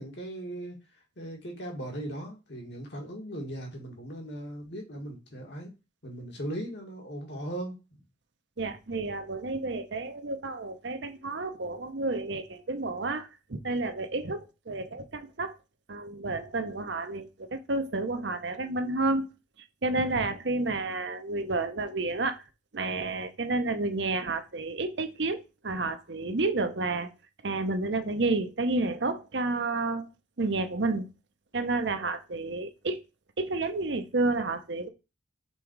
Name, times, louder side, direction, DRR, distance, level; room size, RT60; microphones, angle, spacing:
voice 1, 0.0-5.7 6.0-8.0 14.7-14.8, right 1 dB, 60° left, 1.9 m, -38 dB
voice 2, 8.6-15.6 15.9-19.3 19.8-22.4 22.7-27.1 27.4-30.1 30.4-31.1 31.5-33.0 33.4-34.9, right 3 dB, 65° right, 0.8 m, -30 dB
5.5 x 3.8 x 4.6 m
head